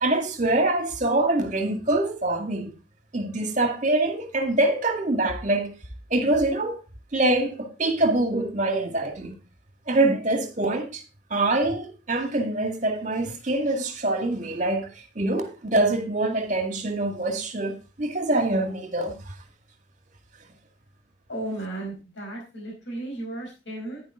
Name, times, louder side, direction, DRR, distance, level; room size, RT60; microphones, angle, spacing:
voice 1, 0.0-2.7 3.1-5.7 6.1-6.8 7.1-9.4 9.9-11.0 11.3-14.9 15.2-19.3, right 2 dB, 40° right, 2.0 m, -24 dB
voice 2, 21.3-24.0, right 1 dB, 80° left, 4.7 m, -34 dB
10.5 x 9.8 x 3.7 m
head